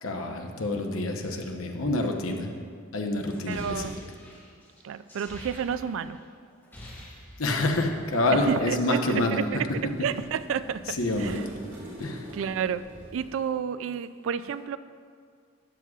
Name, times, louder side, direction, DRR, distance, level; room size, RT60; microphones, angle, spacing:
voice 1, 0.0-2.5 2.9-3.9 7.4-9.4 10.9-11.4 12.0-12.3, left 2 dB, 85° left, 3 dB, 0.9 m, -27 dB
sound 1, 3.2-6.2 6.5-7.8, left 1 dB, 10° left, 2.2 m, -46 dB
voice 2, 3.5-4.0 4.8-6.2 8.3-11.4 12.3-12.8 13.1-14.8, right 7 dB, 65° right, 14 dB, 0.3 m, -30 dB
Scratching Window with Nails, 7.9-13.3, right 1 dB, 40° right, 2.6 m, -45 dB
12.5 x 9.6 x 2.4 m, 2.1 s
head